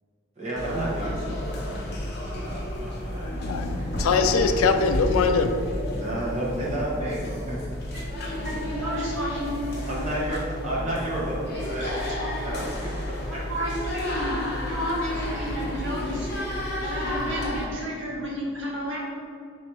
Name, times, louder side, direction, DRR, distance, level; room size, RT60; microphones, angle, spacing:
voice 1, 0.4-2.0 2.3-4.3 5.9-7.7 8.7-8.8 9.9-12.0 12.4-13.4 15.5-15.8, right 1 dB, 30° right, -6 dB, 0.9 m, -32 dB
sound 1, 0.6-17.7, left 1 dB, 50° left, 0.7 m, -32 dB
voice 2, 3.4-5.5, left 5 dB, 90° left, 8 dB, 0.3 m, -22 dB
voice 3, 8.2-10.1 11.4-11.5 12.2-12.4 13.3-14.4 14.6-16.3 16.8-19.0, equal, 70° right, -5 dB, 1.1 m, -31 dB
3.3 x 2.7 x 4.6 m, 2.4 s
head